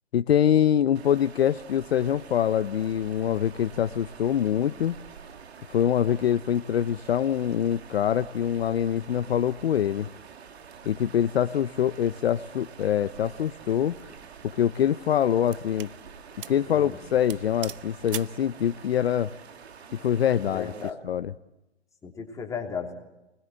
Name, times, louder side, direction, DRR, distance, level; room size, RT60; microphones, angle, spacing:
voice 1, 0.1-5.0 5.7-10.1 10.8-14.0 14.6-15.9 16.5-19.3 19.9-20.7 21.0-21.3, left 9 dB, 65° left, 11 dB, 0.9 m, -24 dB
sound 1, 0.9-20.9, right 6 dB, 70° right, 2.2 m, -47 dB
sound 2, 13.8-14.0 14.7-16.0 16.4-16.7 16.9-17.0 17.3-18.4, right 11 dB, 50° right, 0.8 m, -40 dB
voice 2, 16.7-17.0 20.5-21.0 22.0-22.9, left 6 dB, 10° left, 1 dB, 3.0 m, -35 dB
28.0 x 20.5 x 7.8 m, 0.96 s
hypercardioid pair, 140°, 34 cm